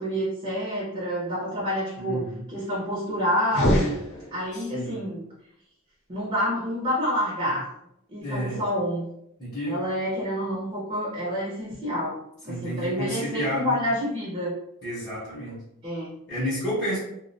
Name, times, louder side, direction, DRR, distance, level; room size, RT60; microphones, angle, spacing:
voice 1, 0.0-4.0 4.3-5.2 6.1-7.6 8.1-9.1 9.6-12.2 12.4-14.5 15.8-16.1, equal, 30° right, -6 dB, 0.6 m, -28 dB
voice 2, 2.0-2.4 4.7-5.0 8.2-8.6 9.4-9.9 12.5-13.8 14.8-15.6 16.3-17.0, equal, 20° left, -10 dB, 0.8 m, -30 dB
sound 1, 3.4-4.8, equal, 70° left, 0.7 m, -25 dB
2.3 x 2.1 x 2.6 m, 0.78 s
head